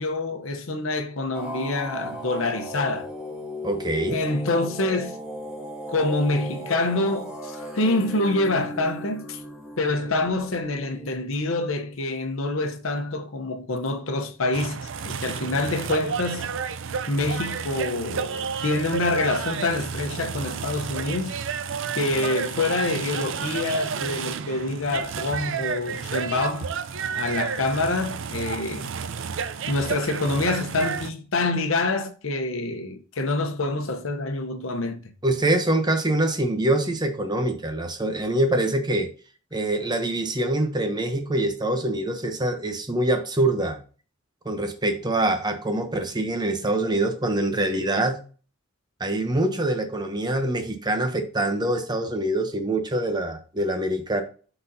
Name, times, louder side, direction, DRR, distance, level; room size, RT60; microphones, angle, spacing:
voice 1, 0.0-3.1 4.1-5.2 5.9-9.4 9.8-16.5 17.1-21.3 21.9-26.7 27.1-28.9 29.7-35.1, left 2 dB, 75° left, 0.9 m, -26 dB
sound 1, 1.3-11.1, equal, 5° right, 1.8 m, -36 dB
voice 2, 3.6-4.2 35.2-39.1 39.5-43.8 44.4-48.2 49.0-54.2, right 1 dB, 20° right, 0.9 m, -24 dB
sound 2, 14.5-31.1, right 6 dB, 65° right, 0.5 m, -31 dB
11.5 x 4.0 x 2.8 m
head